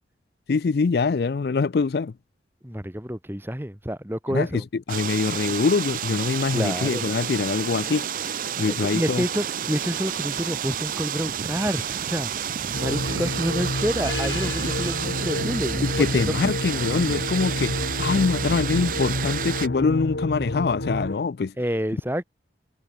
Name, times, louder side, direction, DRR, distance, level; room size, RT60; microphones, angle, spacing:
voice 1, 0.5-2.1 4.3-4.6 4.9-9.2 15.8-21.5, left 4 dB, 60° left, 0.4 m, -24 dB
voice 2, 2.6-4.6 6.5-7.0 8.7-12.3 12.8-16.2 21.6-22.2, equal, 10° right, 2.8 m, -28 dB
sound 1, 4.9-19.7, right 8 dB, 45° right, 0.5 m, -30 dB
sound 2, 9.6-18.0, right 8 dB, 85° right, 3.0 m, -47 dB
sound 3, 12.7-21.1, left 1 dB, 85° left, 2.8 m, -29 dB
head